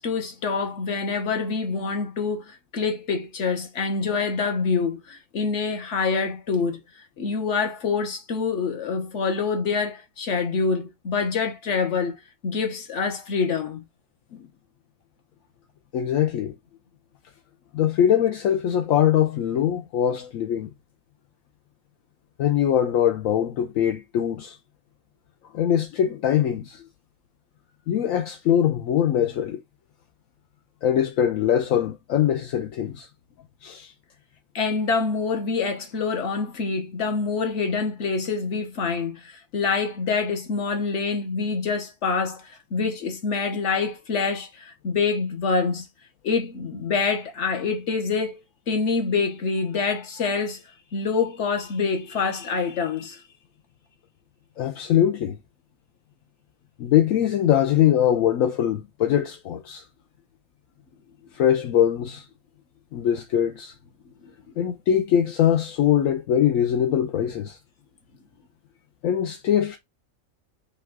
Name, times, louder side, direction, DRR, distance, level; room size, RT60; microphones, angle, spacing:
voice 1, 0.0-6.8 7.2-12.2 12.4-13.9 34.5-42.4 42.7-45.9 46.2-48.4 48.7-50.6 50.9-53.2, left 5 dB, 60° left, 1.4 m, -26 dB
voice 2, 15.9-16.5 17.7-20.7 22.4-24.6 25.5-26.8 27.9-29.6 30.8-33.1 33.6-33.9 54.6-55.4 56.8-59.8 61.3-62.2 62.9-63.7 64.6-67.6 69.0-69.8, left 10 dB, 80° left, 1.0 m, -22 dB
5.5 x 2.4 x 3.5 m
omnidirectional pair, 1.4 m